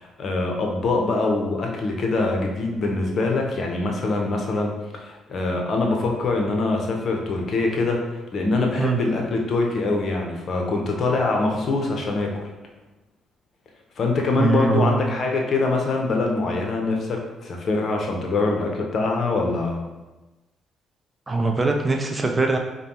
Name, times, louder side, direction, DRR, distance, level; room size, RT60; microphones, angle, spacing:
voice 1, 0.0-4.7 5.0-12.4 14.0-19.8, left 3 dB, 55° left, 1 dB, 0.7 m, -24 dB
voice 2, 14.4-15.1 21.3-22.6, right 3 dB, 25° right, 3 dB, 0.6 m, -21 dB
5.0 x 2.2 x 2.9 m, 1.1 s
hypercardioid pair, 50°, 0 cm